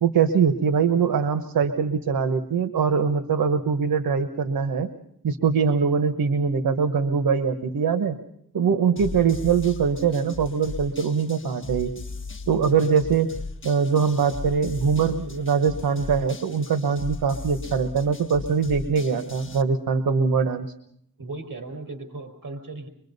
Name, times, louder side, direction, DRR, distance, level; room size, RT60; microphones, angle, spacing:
voice 1, 0.0-4.9 5.2-8.2 8.5-11.9 12.5-13.3 13.6-20.7, right 6 dB, 90° right, 8 dB, 1.2 m, -22 dB
sound 1, 9.0-19.6, left 3 dB, 35° left, 1.6 m, -37 dB
voice 2, 12.7-13.0 21.2-22.9, right 3 dB, 70° right, 8 dB, 4.9 m, -37 dB
24.5 x 22.5 x 5.4 m, 0.71 s
cardioid pair, 75°, 34 cm